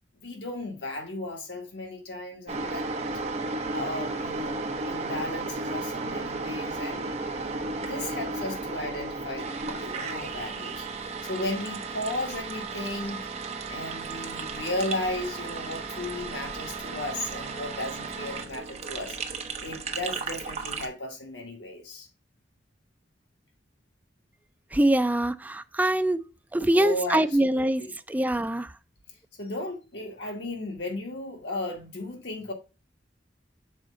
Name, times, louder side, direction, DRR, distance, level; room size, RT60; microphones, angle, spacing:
voice 1, 0.2-2.9 3.7-7.1 7.6-10.8 11.2-13.3 13.7-19.2 19.6-22.1 26.7-27.9 29.4-32.5, left 2 dB, 80° left, 1.5 m, -35 dB
sound 1, 2.5-20.9, right 3 dB, 35° right, 0.7 m, -34 dB
voice 2, 24.7-26.2 26.5-27.8 28.1-28.7, right 1 dB, 10° right, 0.3 m, -23 dB
6.3 x 4.2 x 3.8 m
head